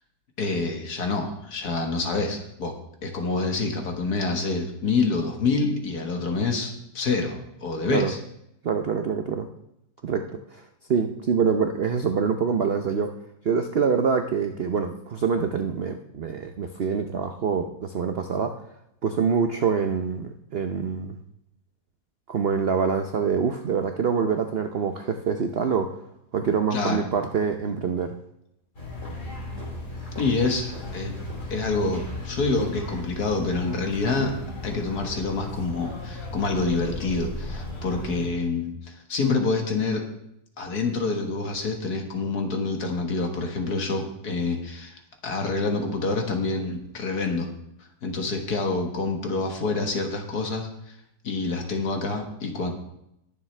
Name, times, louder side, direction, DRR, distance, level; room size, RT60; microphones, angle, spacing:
voice 1, 0.4-2.7 3.0-8.2 26.7-27.1 30.2-31.1 31.5-34.3 34.6-40.0 40.6-45.0 45.2-47.5 48.0-51.0 51.2-52.7, left 3 dB, 60° left, 3 dB, 1.9 m, -27 dB
voice 2, 8.6-9.5 10.0-10.2 10.5-10.6 10.9-13.1 13.4-18.6 19.0-21.2 22.3-25.9 26.3-28.1, right 6 dB, 60° right, 6 dB, 0.6 m, -25 dB
sound 1, 28.7-38.3, left 2 dB, 45° left, 3.5 m, -36 dB
20.0 x 7.3 x 3.3 m, 0.81 s
omnidirectional pair, 1.9 m